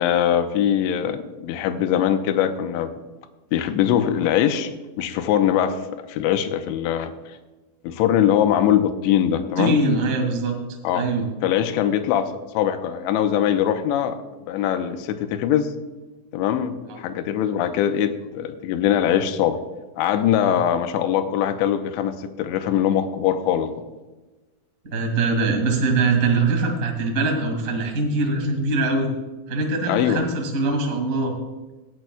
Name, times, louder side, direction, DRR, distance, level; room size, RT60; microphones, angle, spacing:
voice 1, 0.0-2.9 3.5-4.7 5.0-5.8 6.1-7.4 7.8-9.8 10.8-11.1 11.4-14.2 14.5-15.7 16.3-19.6 20.0-23.7 29.9-30.2, left 10 dB, 80° left, 8 dB, 2.9 m, -22 dB
voice 2, 9.6-10.5 10.9-11.3 16.9-17.0 20.4-20.5 24.8-29.1 29.5-31.3, right 3 dB, 50° right, 1 dB, 0.9 m, -22 dB
19.0 x 11.0 x 2.3 m, 1.2 s
omnidirectional pair, 5.3 m